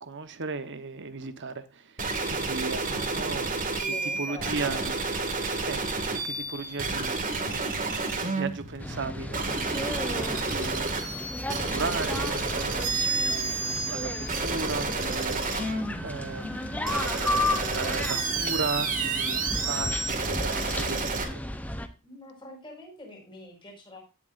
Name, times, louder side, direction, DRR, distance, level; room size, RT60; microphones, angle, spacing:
voice 1, 0.0-3.6 4.2-4.9 5.7-5.8 6.1-7.3 8.2-13.6 13.9-16.9 17.7-21.4, right 4 dB, 55° right, 1.1 m, -36 dB
sound 1, 2.0-21.2, right 3 dB, 40° right, 2.1 m, -30 dB
voice 2, 3.7-4.9 22.0-24.0, left 2 dB, 20° left, 5.2 m, -44 dB
sound 2, 8.8-21.9, left 1 dB, 5° left, 0.7 m, -34 dB
Wind instrument woodwind instrument, 15.9-20.1, equal, 85° left, 2.3 m, -46 dB
17.0 x 7.1 x 2.6 m
head